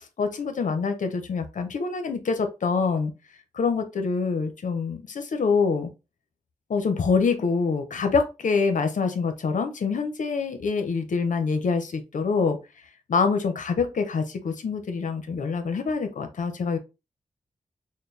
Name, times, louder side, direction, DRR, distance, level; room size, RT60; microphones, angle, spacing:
voice 1, 0.0-3.1 3.5-5.9 6.7-12.6 13.1-16.8, left 5 dB, 75° left, 7 dB, 0.7 m, -25 dB
4.3 x 2.2 x 3.3 m, 0.27 s
wide cardioid pair, 115°, 13 cm